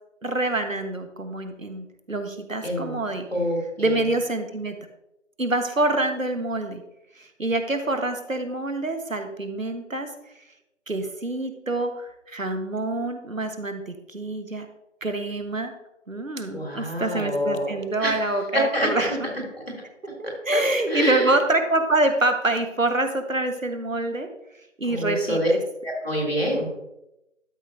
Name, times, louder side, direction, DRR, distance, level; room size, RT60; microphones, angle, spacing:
voice 1, 0.2-3.3 3.8-4.7 5.4-6.8 7.2-10.1 10.9-14.7 15.0-15.7 16.1-19.2 20.2-24.3 24.8-25.6, right 2 dB, 85° right, 7 dB, 1.3 m, -26 dB
voice 2, 2.6-3.0 3.3-4.0 16.5-18.2 18.5-19.1 19.5-19.6 20.5-20.6 20.9-21.3 24.9-25.5 25.8-26.7, equal, 50° left, -2 dB, 2.8 m, -26 dB
12.5 x 5.9 x 2.6 m, 0.89 s
figure-of-eight pair, 180°, 39 cm